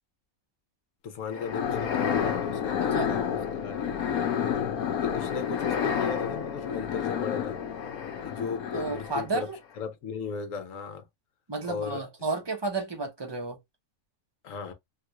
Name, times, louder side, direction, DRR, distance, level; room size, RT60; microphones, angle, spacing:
voice 1, 1.0-4.0 4.4-4.7 5.0-7.6 8.2-9.5 9.8-11.1 11.6-12.0 14.4-14.7, left 5 dB, 65° left, 1.1 m, -36 dB
sound 1, 1.3-9.4, left 8 dB, 90° left, 1.1 m, -30 dB
voice 2, 8.7-9.6 11.5-13.6, right 3 dB, 20° right, 0.7 m, -31 dB
3.3 x 2.4 x 2.9 m
omnidirectional pair, 1.5 m